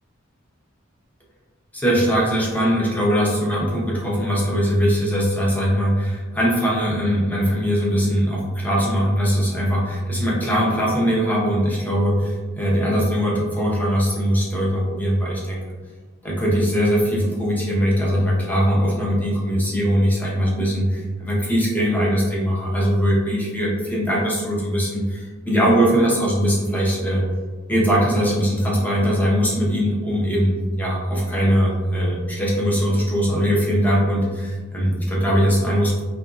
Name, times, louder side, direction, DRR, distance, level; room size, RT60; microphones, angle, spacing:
voice 1, 1.7-15.6 16.2-27.2 27.7-36.0, equal, 10° left, -5 dB, 0.7 m, -21 dB
2.9 x 2.5 x 2.4 m, 1.3 s
head